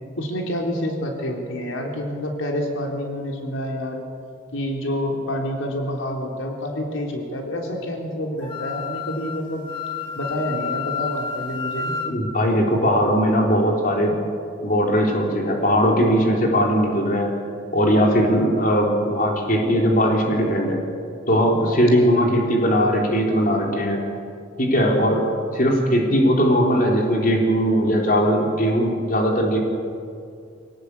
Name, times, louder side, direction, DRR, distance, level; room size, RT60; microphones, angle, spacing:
voice 1, 0.2-4.0 4.5-9.6 10.2-12.0 21.8-22.7, equal, 75° left, 1 dB, 3.5 m, -28 dB
Wind instrument woodwind instrument, 8.4-12.1, left 6 dB, 25° left, 2.1 m, -30 dB
voice 2, 11.8-14.1 14.6-17.3 17.7-20.8 21.3-24.0 24.6-25.2 25.5-29.6, equal, 45° left, 0 dB, 3.7 m, -19 dB
26.0 x 18.5 x 8.3 m, 2.4 s
head